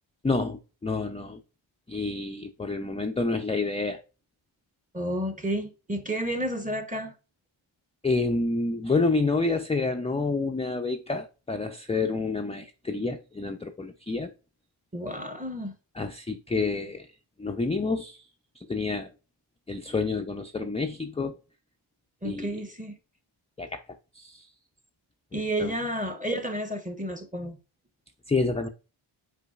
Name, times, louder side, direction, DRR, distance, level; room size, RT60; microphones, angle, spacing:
voice 1, 0.2-1.4 1.9-4.0 8.0-14.3 16.0-17.1 17.4-18.2 18.6-19.1 19.7-21.4 22.2-22.6 23.6-23.8 24.1-24.5 25.6-25.7 28.3-28.7, left 3 dB, 15° left, 0.4 m, -28 dB
voice 2, 4.9-7.1 14.9-15.7 22.2-22.9 25.3-27.6, right 1 dB, 15° right, 0.8 m, -31 dB
5.3 x 3.8 x 2.3 m
cardioid pair, 50°, 50 cm